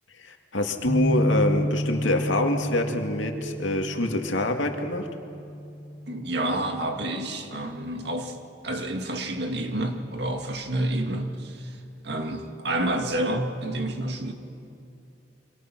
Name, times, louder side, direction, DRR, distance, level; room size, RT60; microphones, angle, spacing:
voice 1, 0.2-5.1, left 1 dB, 90° left, 3 dB, 2.3 m, -26 dB
sound 1, 0.8-7.1, equal, 40° right, 3.2 m, -31 dB
voice 2, 6.1-8.3 8.6-11.8 12.0-14.3, right 1 dB, 60° right, 4 dB, 2.1 m, -29 dB
27.5 x 25.5 x 6.1 m, 2.7 s
head